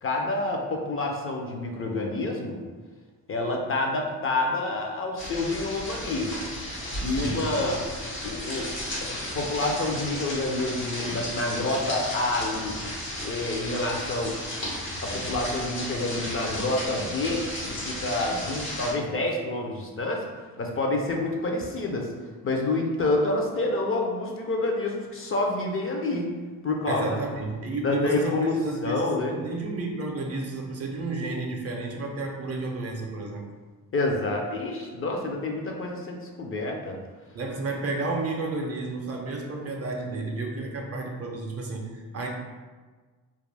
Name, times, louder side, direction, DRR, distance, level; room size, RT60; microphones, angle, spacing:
voice 1, 0.0-2.6 3.3-6.3 7.0-7.8 8.2-8.7 9.3-12.8 13.2-14.3 15.0-17.4 17.8-20.2 20.6-22.1 22.4-26.3 26.6-27.1 27.8-28.5 28.8-29.4 33.9-37.0, left 2 dB, 35° left, 1 dB, 0.4 m, -28 dB
sound 1, 5.2-18.9, left 1 dB, 85° left, 1.0 m, -34 dB
voice 2, 7.2-7.6 26.9-29.1 29.4-33.4 37.3-42.3, right 2 dB, 45° right, 1 dB, 0.5 m, -31 dB
2.4 x 2.1 x 3.2 m, 1.4 s
cardioid pair, 85°, 36 cm